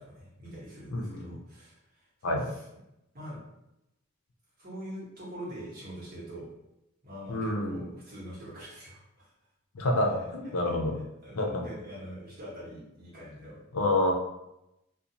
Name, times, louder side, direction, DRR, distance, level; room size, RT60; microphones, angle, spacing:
voice 1, 0.1-2.6 3.1-3.4 4.6-6.5 7.0-9.3 10.6-13.6, equal, 45° right, -7 dB, 1.1 m, -44 dB
voice 2, 0.9-1.4 2.2-2.5 7.3-7.9 9.7-10.9 11.3-11.6 13.7-14.1, left 1 dB, 80° left, 1 dB, 0.5 m, -28 dB
2.5 x 2.2 x 2.7 m, 0.88 s
head